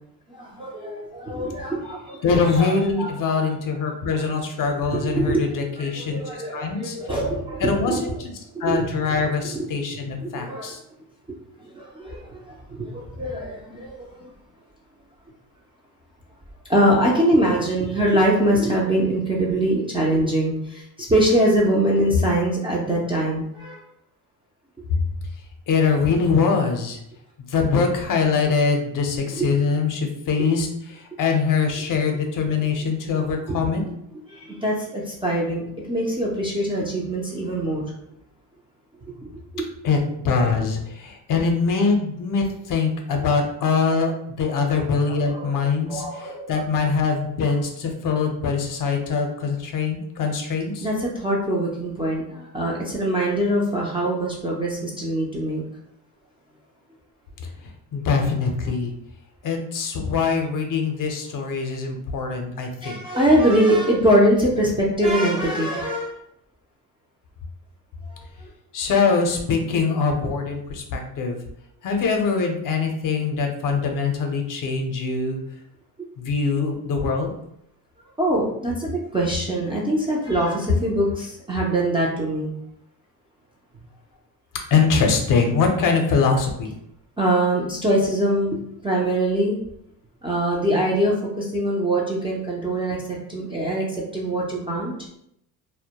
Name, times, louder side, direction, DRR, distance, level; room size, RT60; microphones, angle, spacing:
voice 1, 0.3-2.2 2.5-3.1 4.9-5.5 5.8-8.0 8.5-8.9 9.5-9.7 10.2-10.7 11.3-14.3 16.7-23.8 29.4-29.5 33.5-33.6 34.3-37.8 39.5-39.6 45.0-45.6 45.9-46.6 50.8-55.7 62.8-66.1 68.1-68.5 78.2-82.5 87.2-89.6 90.2-94.9, right 1 dB, 15° right, -4 dB, 0.3 m, -23 dB
voice 2, 2.2-6.2 6.5-7.0 7.6-10.8 25.7-27.0 27.5-33.8 39.8-50.9 57.4-58.9 59.4-63.0 68.7-71.4 71.8-75.4 76.2-77.3 84.7-86.7, left 5 dB, 50° left, 3 dB, 0.6 m, -23 dB
2.1 x 2.1 x 2.8 m, 0.75 s
cardioid pair, 95°, 43 cm